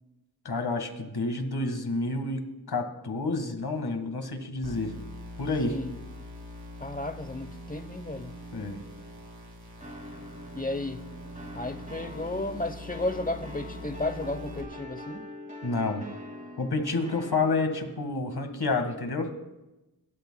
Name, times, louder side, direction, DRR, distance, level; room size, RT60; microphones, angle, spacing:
voice 1, 0.5-4.9 5.4-5.7 8.5-8.8 15.6-16.0 16.6-19.3, left 3 dB, 70° left, 1.8 m, -29 dB
sound 1, 4.6-14.6, equal, 45° right, 3.2 m, -43 dB
voice 2, 6.8-8.4 10.5-11.1 11.5-15.3, left 2 dB, 20° left, 0.9 m, -33 dB
sound 2, 9.8-18.1, left 1 dB, 20° right, 2.4 m, -44 dB
26.0 x 13.0 x 2.3 m
wide cardioid pair, 70°, 40 cm